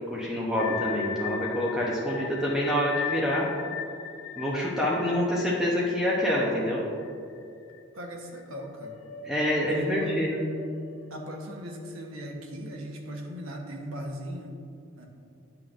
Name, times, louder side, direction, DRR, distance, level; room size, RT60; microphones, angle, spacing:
voice 1, 0.1-3.4 4.4-6.8 9.2-10.4, equal, ahead, -6 dB, 0.7 m, -27 dB
sound 1, 0.6-7.4 7.7-7.8 8.4-13.7, left 7 dB, 70° left, 0.4 m, -38 dB
voice 2, 7.9-8.9 9.7-10.1 11.1-14.5 15.0-15.1, right 1 dB, 75° right, 1 dB, 1.0 m, -38 dB
9.4 x 5.8 x 2.5 m, 2.6 s
head